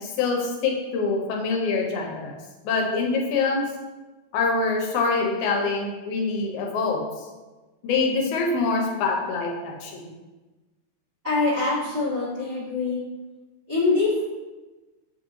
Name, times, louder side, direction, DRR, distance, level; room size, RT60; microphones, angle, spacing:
voice 1, 0.0-2.3 2.6-3.6 4.3-7.3 7.8-10.1, left 4 dB, 80° left, 0 dB, 2.0 m, -25 dB
voice 2, 11.2-13.0 13.7-14.2, left 3 dB, 35° right, -13 dB, 0.9 m, -24 dB
6.5 x 2.6 x 2.9 m, 1.2 s
omnidirectional pair, 3.5 m